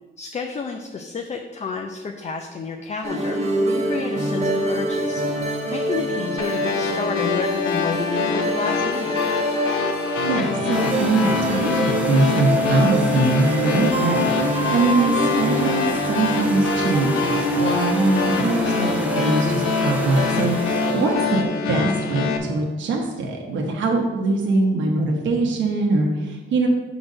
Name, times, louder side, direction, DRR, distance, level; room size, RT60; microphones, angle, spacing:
voice 1, 0.2-3.4 3.7-5.4 5.7-9.2, left 4 dB, 35° left, 3 dB, 0.6 m, -30 dB
sound 1, 3.0-21.4, right 1 dB, 30° right, 1.4 m, -25 dB
sound 2, 6.4-22.4, left 6 dB, 85° left, 0.8 m, -26 dB
voice 2, 10.3-14.2 14.7-26.7, right 2 dB, 70° right, -1 dB, 1.0 m, -22 dB
sound 3, 10.7-21.2, right 1 dB, 5° right, 0.8 m, -35 dB
6.1 x 4.0 x 6.3 m, 1.3 s
cardioid pair, 90°, 20 cm